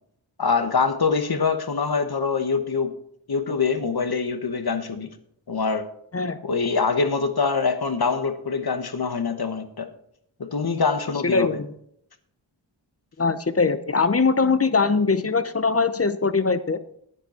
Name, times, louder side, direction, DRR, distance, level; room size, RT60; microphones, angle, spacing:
voice 1, 0.4-2.9 3.3-5.1 5.5-5.9 6.4-9.9 10.4-11.6, left 5 dB, 55° left, 9 dB, 1.2 m, -24 dB
voice 2, 11.2-11.7 13.2-16.8, left 4 dB, 30° left, 13 dB, 0.8 m, -21 dB
10.0 x 9.5 x 4.4 m, 0.70 s
cardioid pair, 45°, 46 cm